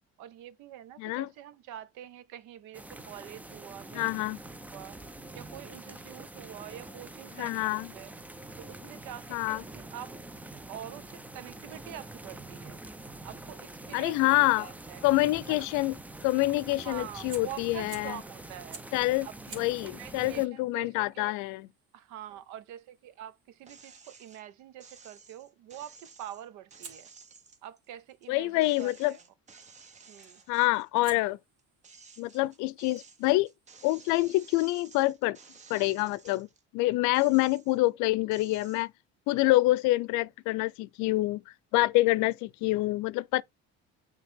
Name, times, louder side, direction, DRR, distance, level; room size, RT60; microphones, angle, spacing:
voice 1, 0.2-4.1 4.7-5.0 5.3-8.1 8.6-10.2 10.7-12.8 13.2-15.0 15.5-15.7 16.8-18.8 19.2-19.3 19.8-21.3 21.9-27.1 27.6-29.2 30.1-30.4, right 11 dB, 80° right, 1.0 m, -45 dB
voice 2, 1.0-1.3 3.9-4.4 7.4-7.9 9.3-9.6 13.9-14.7 15.0-16.0 16.2-18.2 18.9-19.3 19.5-21.7 28.3-29.2 30.5-31.4 32.2-33.5 33.8-35.4 35.7-36.5 36.7-38.9 39.3-41.4 41.7-43.4, left 19 dB, 90° left, 0.5 m, -26 dB
sound 1, 2.7-20.5, right 2 dB, 5° right, 0.3 m, -45 dB
Fire, 17.3-18.2 18.7-19.0 19.4-24.4 26.8-28.9 30.2-30.5 31.0-34.5, right 5 dB, 55° right, 2.4 m, -53 dB
sound 2, 23.7-24.4 24.8-28.3 28.6-31.2 31.6-36.6 37.0-37.9 38.3-38.8, right 5 dB, 25° right, 0.9 m, -54 dB
9.2 x 3.4 x 3.5 m
cardioid pair, 165°, 29 cm